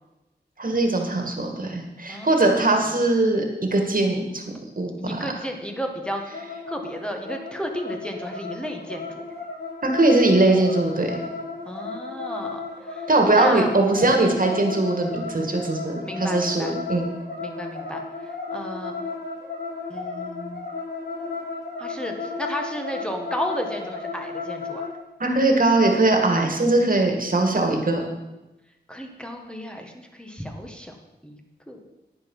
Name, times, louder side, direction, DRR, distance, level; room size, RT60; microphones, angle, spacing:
voice 1, 0.6-5.3 9.8-11.2 13.1-17.1 25.2-28.1, right 2 dB, 50° right, 2 dB, 2.1 m, -21 dB
voice 2, 2.1-2.6 5.0-6.2 6.7-9.3 11.7-12.6 12.9-13.1 13.4-13.7 16.0-16.7 17.4-18.9 19.9-20.6 21.8-24.9 28.9-31.0 31.2-31.4 31.7-31.8, equal, 5° left, 2 dB, 1.8 m, -33 dB
sound 1, 6.3-25.0, left 4 dB, 65° left, 3.7 m, -34 dB
10.5 x 9.7 x 5.5 m, 1.0 s
wide cardioid pair, 85°, 18 cm